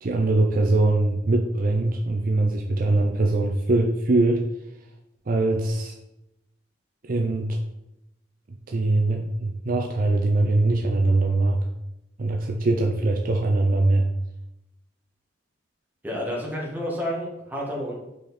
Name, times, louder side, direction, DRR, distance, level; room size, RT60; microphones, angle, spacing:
voice 1, 0.0-4.5 5.3-5.9 7.1-7.6 8.7-11.6 12.2-14.1, right 2 dB, 50° right, 2 dB, 0.6 m, -22 dB
voice 2, 16.0-17.9, equal, 10° right, -3 dB, 1.7 m, -30 dB
6.4 x 5.0 x 4.2 m, 0.90 s
head